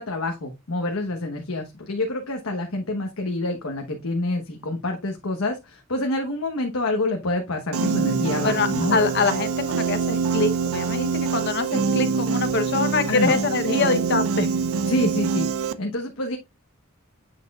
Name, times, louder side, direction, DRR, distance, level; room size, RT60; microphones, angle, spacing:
voice 1, 0.0-9.0 13.1-13.4 14.9-16.4, left 2 dB, 85° left, 1.2 m, -27 dB
Piano, 7.7-15.7, right 5 dB, 85° right, 0.6 m, -25 dB
voice 2, 8.4-14.5, left 3 dB, 55° left, 1.0 m, -24 dB
8.2 x 6.2 x 2.4 m
head